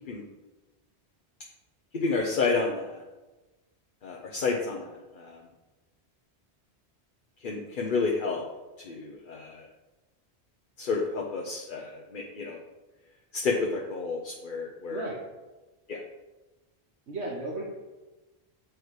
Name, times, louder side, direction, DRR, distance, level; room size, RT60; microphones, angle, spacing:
voice 1, 1.9-3.0 4.0-4.9 5.2-5.4 7.4-8.4 8.8-9.6 10.8-12.6 13.3-15.0 15.9-16.0, left 4 dB, 50° left, -1 dB, 0.9 m, -30 dB
voice 2, 14.9-15.2 17.1-17.6, right 2 dB, 85° right, -4 dB, 1.4 m, -34 dB
7.8 x 4.8 x 4.8 m, 1.1 s
omnidirectional pair, 1.1 m